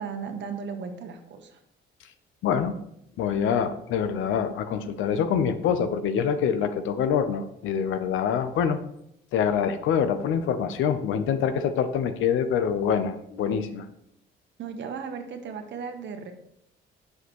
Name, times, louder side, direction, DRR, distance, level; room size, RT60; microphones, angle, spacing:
voice 1, 0.0-1.6 14.6-16.3, right 6 dB, 65° right, 6 dB, 1.1 m, -36 dB
voice 2, 2.4-2.8 3.2-8.8 9.3-13.8, left 7 dB, 85° left, 10 dB, 0.7 m, -25 dB
7.1 x 6.5 x 3.1 m, 0.76 s
cardioid pair, 90°, 20 cm